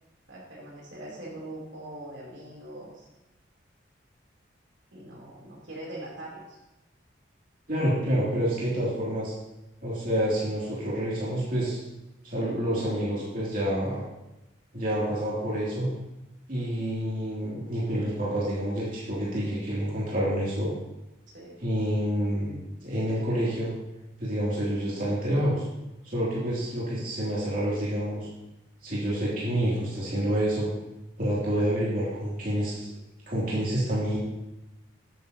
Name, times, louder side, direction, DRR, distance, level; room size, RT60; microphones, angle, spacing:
voice 1, 0.3-3.1 4.9-6.6 21.3-21.6, right 1 dB, 70° right, -4 dB, 3.0 m, -42 dB
voice 2, 7.7-9.3 9.8-11.8 12.2-14.0 14.7-15.9 16.5-20.7 21.6-23.7 24.2-25.7 26.0-28.3 28.8-30.7 31.2-32.9 33.3-34.2, equal, 45° right, -7 dB, 2.6 m, -28 dB
11.5 x 9.1 x 2.8 m, 0.96 s
head